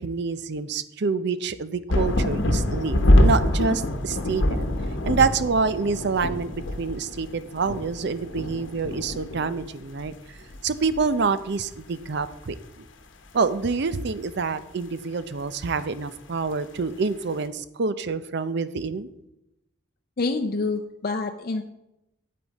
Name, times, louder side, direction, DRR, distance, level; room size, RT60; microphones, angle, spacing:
voice 1, 0.0-4.6 5.0-10.1 10.6-12.8 13.3-19.1, right 4 dB, 60° right, 14 dB, 0.6 m, -27 dB
sound 1, 1.9-9.7 10.0-10.1 10.4-11.3 12.2-12.3, left 1 dB, 80° left, 1.0 m, -24 dB
voice 2, 20.2-21.7, left 3 dB, 50° left, 4 dB, 0.5 m, -27 dB
8.6 x 8.3 x 4.1 m, 0.88 s
head